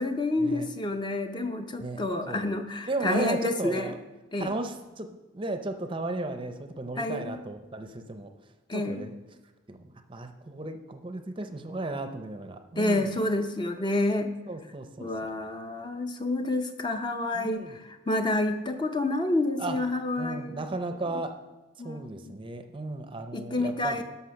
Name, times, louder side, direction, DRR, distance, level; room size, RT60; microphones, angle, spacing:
voice 1, 0.0-3.9 4.3-4.5 7.0-7.4 8.7-9.0 12.8-14.3 15.0-20.7 21.8-22.3 23.3-24.0, left 2 dB, 20° left, 6 dB, 0.6 m, -29 dB
voice 2, 2.8-4.0 4.4-8.3 8.7-9.1 9.7-13.1 14.5-15.3 17.3-17.8 19.6-19.8 20.2-21.4 21.8-24.0, right 2 dB, 25° right, 7 dB, 0.6 m, -35 dB
12.5 x 5.7 x 5.8 m, 1.1 s
head